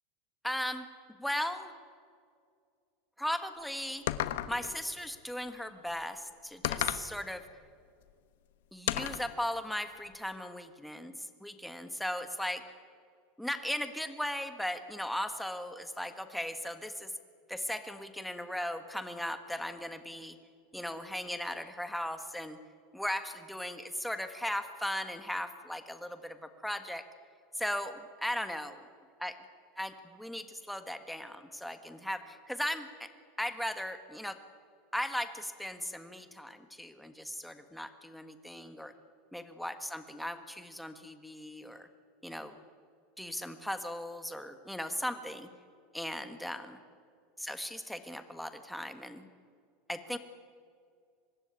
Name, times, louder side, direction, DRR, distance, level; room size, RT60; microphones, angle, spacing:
voice 1, 0.4-0.9 1.2-1.7 3.2-4.0 4.5-7.4 8.7-12.6 13.4-17.1 17.5-20.4 20.7-22.6 22.9-27.0 27.5-28.8 29.2-29.4 29.8-33.1 33.4-34.4 34.9-38.9 39.3-41.9 42.2-42.6 43.2-45.5 45.9-46.8 47.4-49.3 49.9-50.2, left 1 dB, ahead, 8 dB, 1.5 m, -37 dB
sound 1, 4.1-4.8 6.6-7.1 8.9-9.3, left 13 dB, 80° left, 1.3 m, -32 dB
24.5 x 20.0 x 9.7 m, 2.3 s
supercardioid pair, 155°, 0 cm